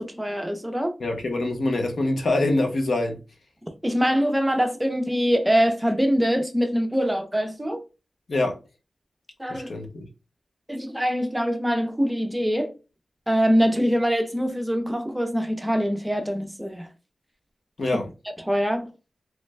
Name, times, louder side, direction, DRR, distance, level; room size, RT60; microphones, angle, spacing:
voice 1, 0.0-0.9 3.8-7.8 9.4-9.7 10.7-12.7 13.3-16.9 18.5-18.9, equal, 10° right, 0.5 m, -23 dB
voice 2, 1.0-3.2 8.3-8.5 9.5-10.0 17.8-18.1, left 2 dB, 65° left, 0.8 m, -24 dB
3.2 x 2.2 x 3.2 m
wide cardioid pair, 105°, 0 cm